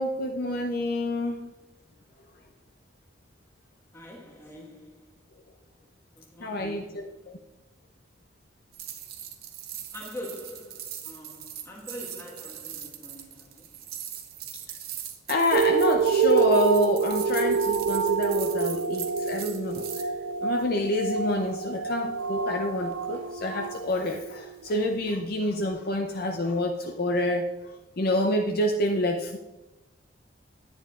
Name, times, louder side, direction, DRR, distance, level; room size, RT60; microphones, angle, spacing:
voice 1, 0.0-1.5 6.4-7.4 15.3-20.1 20.4-29.4, left 1 dB, 50° left, 0.5 m, -28 dB
voice 2, 3.9-5.3 6.1-7.4 9.9-13.9, left 1 dB, 15° left, 1.4 m, -44 dB
sound 1, 8.7-20.1, right 10 dB, 50° right, 0.7 m, -40 dB
sound 2, 15.5-24.4 25.0-25.1, right 6 dB, 85° right, 0.3 m, -27 dB
10.0 x 8.9 x 2.4 m
head